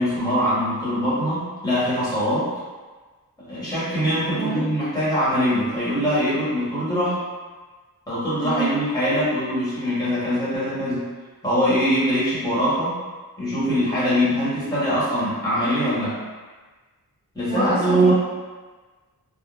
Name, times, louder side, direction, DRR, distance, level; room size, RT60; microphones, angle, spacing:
voice 1, 0.0-2.5 3.4-7.2 8.1-11.0 11.4-13.0 13.4-16.2 17.3-18.1, equal, 10° left, -11 dB, 1.3 m, -22 dB
voice 2, 4.3-4.7 8.4-8.7 17.5-18.1, right 2 dB, 30° left, -13 dB, 1.0 m, -25 dB
3.6 x 2.1 x 2.4 m, 1.3 s
wide cardioid pair, 150°, 37 cm